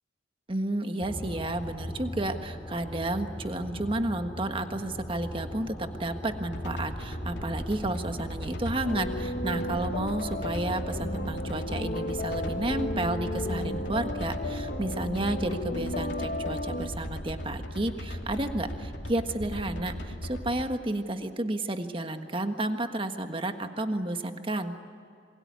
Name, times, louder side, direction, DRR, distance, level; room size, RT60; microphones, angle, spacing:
voice 1, 0.5-24.8, right 1 dB, 30° right, 7 dB, 1.5 m, -31 dB
sound 1, 1.0-16.2, equal, 20° left, 3.0 m, -40 dB
sound 2, 6.5-20.6, equal, 80° left, 2.9 m, -38 dB
sound 3, 8.8-16.9, left 1 dB, 55° left, 1.3 m, -34 dB
27.0 x 22.5 x 9.6 m, 2.4 s
head